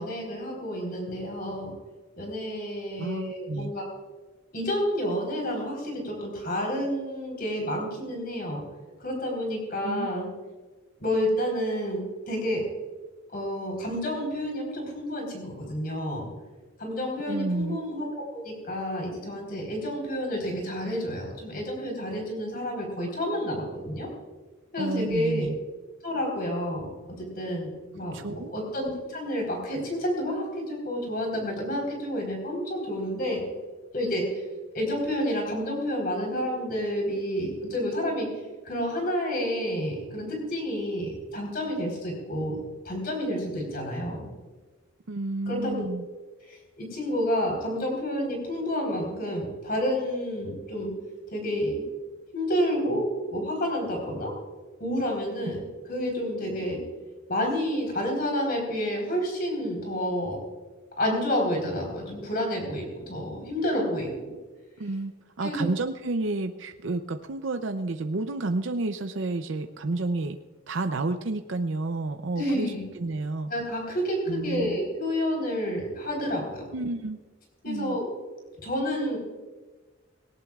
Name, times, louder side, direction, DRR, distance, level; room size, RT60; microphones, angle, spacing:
voice 1, 0.0-1.7 2.2-3.8 4.5-8.6 9.0-10.3 11.0-12.6 13.3-16.3 16.8-24.1 24.7-25.5 26.0-26.9 27.2-33.4 33.9-34.4 34.7-38.3 38.6-42.6 42.8-44.3 45.5-45.8 46.5-50.9 51.3-51.8 52.3-53.0 53.3-54.3 54.8-56.8 57.3-60.4 61.0-64.3 65.4-65.7 72.4-72.8 73.5-76.7 77.6-78.1 78.6-79.2, equal, 45° left, 0 dB, 4.0 m, -29 dB
voice 2, 3.0-3.7 9.8-10.1 17.2-17.8 24.8-25.5 28.1-28.5 45.1-46.1 64.8-65.1 65.4-70.4 70.7-73.5 74.3-74.8 76.7-77.2 77.7-78.0, right 2 dB, 70° right, 8 dB, 0.6 m, -30 dB
19.0 x 18.0 x 2.4 m, 1.3 s
head